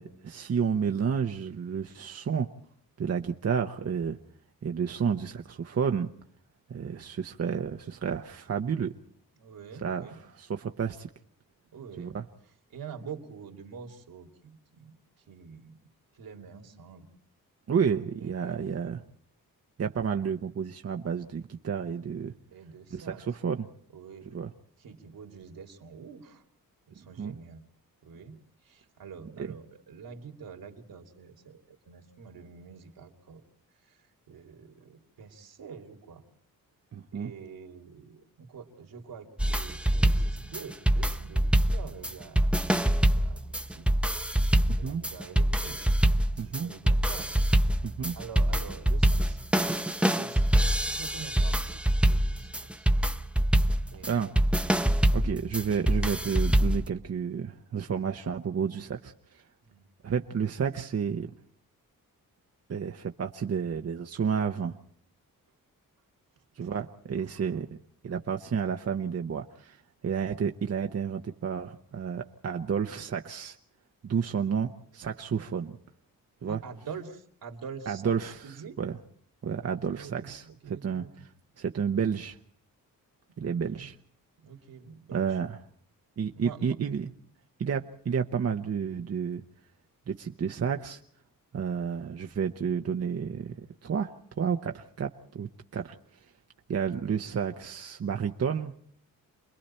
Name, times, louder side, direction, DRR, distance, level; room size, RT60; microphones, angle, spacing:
voice 1, 0.0-2.5 3.0-4.2 4.6-6.1 6.7-8.9 9.8-11.1 12.0-12.2 17.7-19.0 19.8-22.3 22.9-23.7 24.3-24.5 27.2-27.4 29.4-29.5 36.9-37.3 44.7-45.0 46.4-46.7 47.8-48.1 54.0-54.3 55.1-59.4 60.0-61.3 62.7-64.8 66.6-67.7 68.0-73.6 74.0-75.8 76.4-76.6 77.9-78.9 79.4-81.1 81.6-82.4 83.4-84.0 85.1-85.6 86.2-87.1 87.6-89.4 90.1-91.0 91.5-93.5 93.8-96.2 96.7-98.7, right 7 dB, 45° right, 5 dB, 0.9 m, -31 dB
voice 2, 9.3-10.2 11.7-12.2 12.7-15.8 16.1-17.0 18.2-18.7 22.5-23.2 23.9-24.3 24.8-26.4 26.9-27.6 28.0-28.4 28.6-33.4 33.8-36.2 37.1-42.6 42.9-43.9 44.8-45.8 46.4-47.3 48.1-49.4 50.1-52.9 53.9-54.3 59.6-59.9 66.6-66.7 67.2-67.3 76.5-78.8 79.7-81.3 83.4-83.9 84.4-85.4 86.4-86.8, right 6 dB, 75° right, 4 dB, 2.7 m, -46 dB
sound 1, 39.4-56.9, right 1 dB, 5° right, 0.8 m, -25 dB
29.0 x 22.0 x 4.3 m, 0.62 s
cardioid pair, 100°, 35 cm